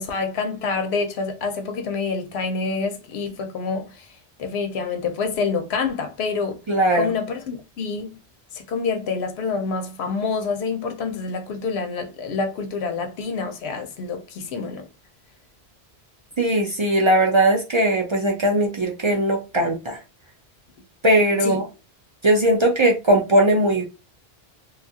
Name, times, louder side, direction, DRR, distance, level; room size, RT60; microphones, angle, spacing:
voice 1, 0.0-4.1 4.4-6.6 6.9-8.2 8.5-14.9 21.4-21.6, left 4 dB, 85° left, 0.8 m, -27 dB
voice 2, 6.7-7.1 16.4-20.0 21.0-21.6 22.2-23.8, right 1 dB, 50° right, 0.3 m, -19 dB
2.7 x 2.3 x 2.6 m
omnidirectional pair, 1.1 m